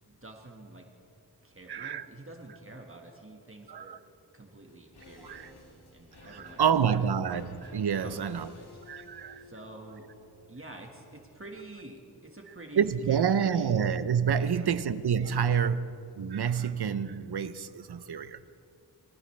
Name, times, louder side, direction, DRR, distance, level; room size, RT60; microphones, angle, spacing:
voice 1, 0.0-0.9 1.4-4.0 4.3-7.0 8.0-8.7 9.4-10.1 10.5-13.9 14.3-14.7, right 2 dB, 35° right, 1.6 m, -48 dB
voice 2, 1.7-2.1 3.7-4.0 5.2-5.5 6.2-8.5 8.9-9.4 12.8-18.4, right 7 dB, 75° right, 0.7 m, -28 dB
sound 1, 4.7-14.0 14.3-14.4, left 1 dB, 80° left, 2.1 m, -55 dB
22.0 x 15.5 x 3.3 m
wide cardioid pair, 70°, 39 cm